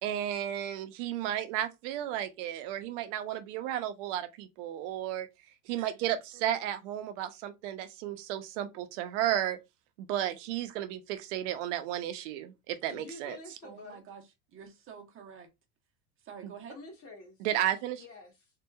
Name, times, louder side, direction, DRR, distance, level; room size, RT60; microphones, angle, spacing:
voice 1, 0.0-5.3 5.7-9.6 10.0-13.4 16.4-16.5 17.4-18.0, right 11 dB, 75° right, 0.7 m, -33 dB
voice 2, 12.9-14.0 16.7-17.5 18.0-18.5, left 3 dB, 40° left, 1.6 m, -48 dB
voice 3, 13.6-15.5 16.2-16.8, right 7 dB, 35° right, 1.0 m, -48 dB
3.6 x 2.7 x 2.3 m
supercardioid pair, 120°, 36 cm